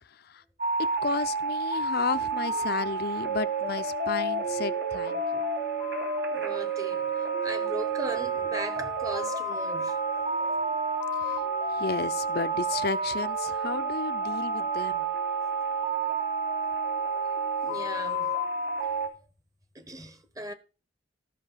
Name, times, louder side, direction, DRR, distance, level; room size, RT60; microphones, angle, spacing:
sound 1, 0.6-19.1, right 3 dB, 70° right, 2.4 m, -30 dB
voice 1, 1.0-5.4 11.2-11.4 11.8-15.1, left 5 dB, 60° left, 0.6 m, -33 dB
voice 2, 6.3-7.1 7.4-10.0 16.6-16.7 17.0-17.4 17.6-18.4 18.8-18.9 19.7-20.5, right 1 dB, 20° right, 1.1 m, -38 dB
13.0 x 5.4 x 5.6 m
head